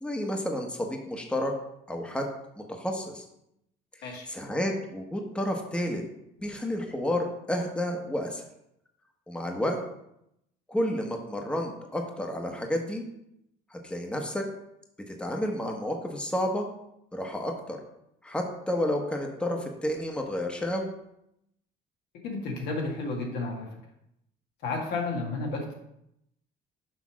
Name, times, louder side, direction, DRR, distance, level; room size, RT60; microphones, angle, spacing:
voice 1, 0.0-1.5 1.9-2.3 2.6-3.3 4.0-6.0 6.4-8.4 9.3-9.8 10.7-13.0 13.7-14.4 15.1-16.7 17.1-17.8 18.2-20.9, left 1 dB, 5° left, 2 dB, 1.0 m, -31 dB
voice 2, 22.2-23.7 24.6-25.7, left 3 dB, 85° left, 0 dB, 1.7 m, -32 dB
6.2 x 3.4 x 6.0 m, 0.80 s
cardioid pair, 110°, 17 cm